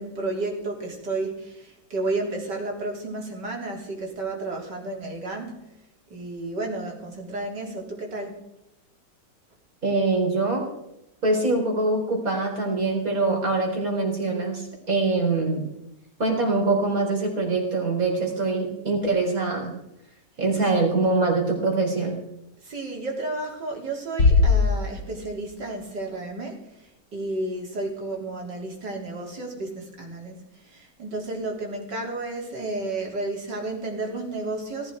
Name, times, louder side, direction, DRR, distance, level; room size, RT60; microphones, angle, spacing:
voice 1, 0.0-5.7 6.1-8.4 22.6-35.0, right 2 dB, 80° right, 0 dB, 4.2 m, -32 dB
voice 2, 9.8-10.7 11.2-15.7 16.2-19.8 20.4-22.2, right 3 dB, 55° right, 0 dB, 4.7 m, -24 dB
Bass drum, 24.2-25.6, left 4 dB, 75° left, 2.3 m, -20 dB
19.0 x 15.0 x 4.8 m, 0.88 s
omnidirectional pair, 1.8 m